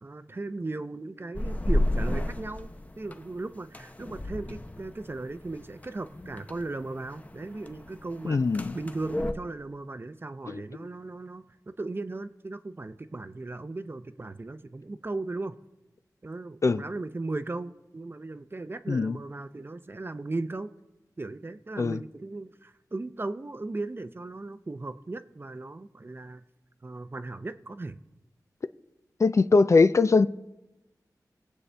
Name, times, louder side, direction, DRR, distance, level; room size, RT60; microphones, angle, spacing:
voice 1, 0.0-2.7 3.0-8.4 8.7-15.6 16.2-20.7 21.2-26.4 26.8-28.0, right 2 dB, 35° right, 0.6 m, -37 dB
sound 1, 1.3-9.3, left 1 dB, 20° left, 0.7 m, -33 dB
voice 2, 8.2-8.8 10.5-10.6 16.6-16.8 18.9-19.2 21.8-22.0 29.2-30.3, left 4 dB, 45° left, 0.4 m, -21 dB
22.5 x 8.1 x 3.4 m
wide cardioid pair, 80°, 7 cm